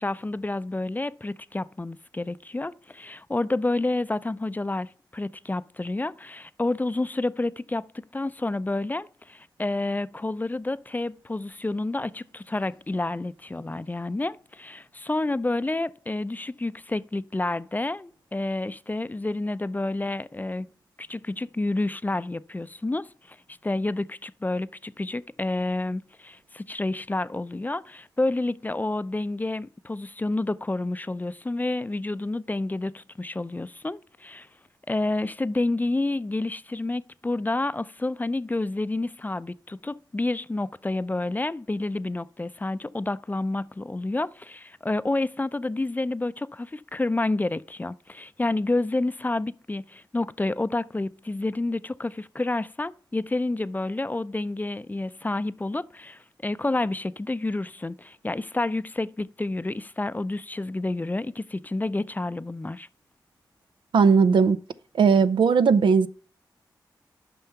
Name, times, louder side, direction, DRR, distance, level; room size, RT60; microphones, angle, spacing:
voice 1, 0.0-7.9 8.1-20.7 21.0-34.5 34.9-62.9, left 2 dB, 20° left, 0.4 m, -29 dB
voice 2, 63.9-64.6 64.9-66.1, right 5 dB, 80° right, 0.5 m, -18 dB
9.0 x 5.6 x 5.7 m
cardioid pair, 50°, 8 cm